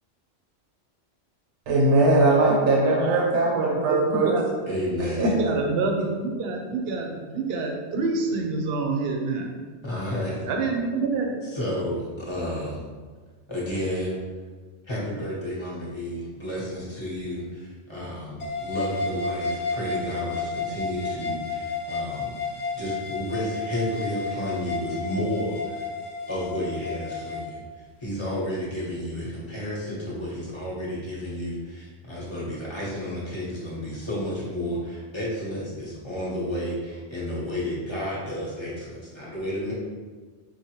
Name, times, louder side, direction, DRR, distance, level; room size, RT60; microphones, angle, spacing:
voice 1, 1.7-4.4 5.0-5.4, right 2 dB, 90° right, -3 dB, 0.9 m, -20 dB
voice 2, 3.0-4.5 5.1-9.5 10.5-11.4, right 3 dB, 65° right, 2 dB, 0.7 m, -27 dB
voice 3, 4.7-5.3 9.8-10.3 11.4-12.8 13.5-14.2 14.8-25.9 26.3-39.7, equal, 25° left, -7 dB, 1.0 m, -31 dB
sound 1, 18.4-27.4, left 3 dB, 45° left, 0.6 m, -32 dB
4.7 x 2.1 x 2.8 m, 1.5 s
omnidirectional pair, 1.2 m